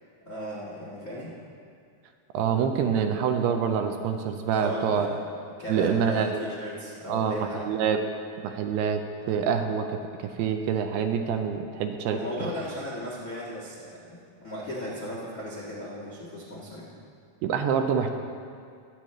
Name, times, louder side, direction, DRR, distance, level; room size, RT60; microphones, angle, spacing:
voice 1, 0.2-1.3 4.6-5.2 5.6-7.6 12.1-16.9, equal, 90° left, -7 dB, 0.7 m, -36 dB
voice 2, 2.3-5.2 5.7-6.4 7.1-8.0 8.4-9.0 9.3-12.5 17.4-18.2, right 7 dB, 80° right, 5 dB, 2.5 m, -26 dB
22.0 x 8.5 x 3.1 m, 2.3 s
omnidirectional pair, 5.0 m